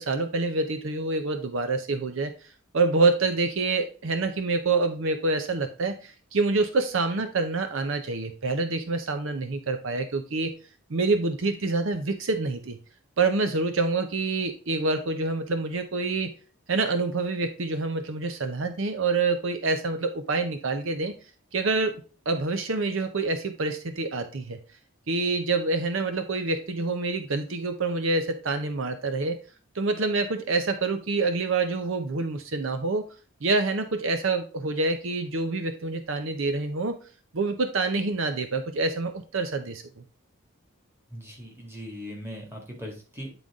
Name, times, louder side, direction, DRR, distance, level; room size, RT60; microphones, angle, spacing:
voice 1, 0.0-2.3 2.7-10.5 10.9-12.8 13.2-16.3 16.7-21.1 21.5-24.6 25.1-29.4 29.7-33.1 33.4-37.0 37.3-40.0, right 3 dB, 65° right, 7 dB, 0.6 m, -27 dB
voice 2, 41.1-43.3, equal, 10° right, 0 dB, 1.8 m, -39 dB
9.0 x 3.9 x 3.6 m, 0.36 s
head